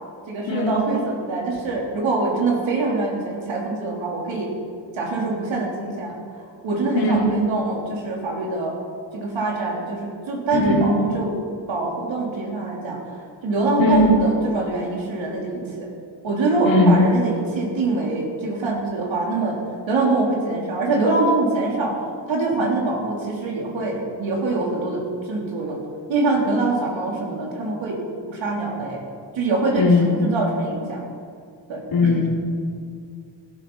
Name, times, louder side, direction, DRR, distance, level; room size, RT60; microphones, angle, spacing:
voice 1, 0.3-4.5 4.9-6.2 6.6-8.8 9.1-11.4 11.7-13.0 13.4-15.9 16.2-19.6 19.9-22.0 22.3-25.8 26.1-28.0 28.3-29.0 29.4-31.0 31.7-32.2, right 3 dB, 85° right, -1 dB, 3.6 m, -24 dB
voice 2, 10.5-10.8 13.8-14.1 16.7-17.0 29.8-30.2 31.9-32.3, left 3 dB, 75° left, -3 dB, 4.0 m, -18 dB
16.5 x 12.5 x 5.6 m, 2.3 s
cardioid pair, 95°, 45 cm